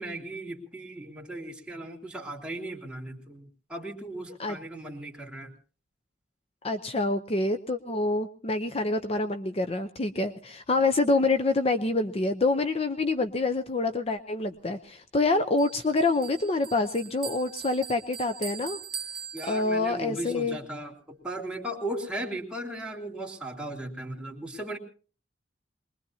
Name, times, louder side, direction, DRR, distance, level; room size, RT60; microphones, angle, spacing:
voice 1, 0.0-5.5 19.3-24.8, right 1 dB, 5° right, -1 dB, 3.0 m, -37 dB
voice 2, 6.6-18.8 19.5-20.6, left 2 dB, 35° left, 9 dB, 0.7 m, -26 dB
Bell, 15.6-20.1, right 7 dB, 25° right, 1.2 m, -41 dB
23.5 x 21.5 x 2.8 m, 0.38 s
head